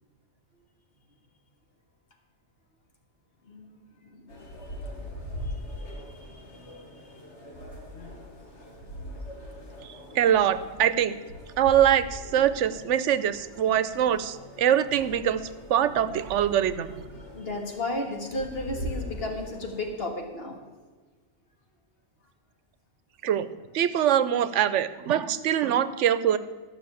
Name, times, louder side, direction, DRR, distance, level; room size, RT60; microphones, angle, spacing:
voice 1, 4.0-4.4 5.4-6.7 17.3-20.6, left 2 dB, 55° left, 2 dB, 1.9 m, -34 dB
sound 1, 4.3-19.9, left 1 dB, 75° left, 2.2 m, -41 dB
voice 2, 10.1-11.1 11.6-15.4 15.7-16.9 23.2-23.5 23.7-26.4, right 10 dB, 85° right, 14 dB, 1.0 m, -23 dB
12.0 x 6.1 x 8.4 m, 1.4 s
omnidirectional pair, 1.2 m